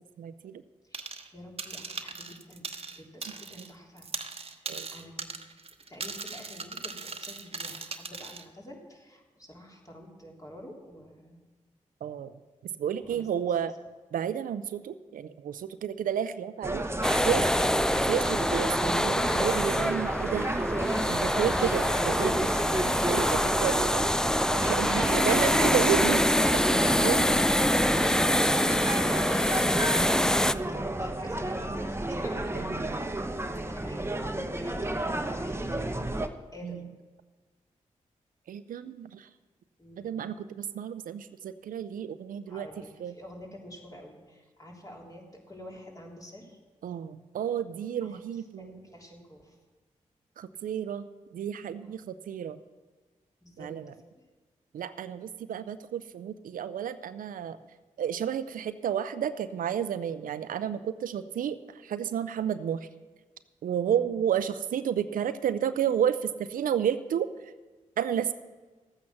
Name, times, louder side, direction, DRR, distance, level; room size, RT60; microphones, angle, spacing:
voice 1, 0.2-0.6 4.7-4.9 12.0-12.3 12.8-13.8 14.1-17.7 17.9-20.5 21.1-22.5 23.1-24.3 24.6-26.3 26.5-27.4 32.5-33.0 36.6-36.9 38.5-39.3 40.0-42.7 43.0-43.1 46.8-48.8 50.4-51.1 51.3-52.6 53.6-53.9 54.7-57.6 58.0-62.9 63.6-67.5 68.0-68.3, right 9 dB, 80° right, 13 dB, 0.5 m, -31 dB
sound 1, 0.9-1.3 1.6-3.7 4.0-8.4, right 4 dB, 45° right, 1.0 m, -39 dB
voice 2, 1.3-2.7 2.9-4.1 4.5-5.3 5.9-11.4 13.0-13.3 30.4-36.9 39.8-40.2 42.5-46.6 48.0-48.2 48.6-49.6 51.8-51.9 53.4-53.8 54.1-54.2 63.8-64.1, equal, 25° left, -1 dB, 3.4 m, -48 dB
sound 2, 16.6-36.3, right 1 dB, 15° right, 1.0 m, -31 dB
sound 3, 17.0-30.5, left 1 dB, 5° left, 0.4 m, -25 dB
13.5 x 8.7 x 6.0 m, 1.3 s
supercardioid pair, 40°, 14 cm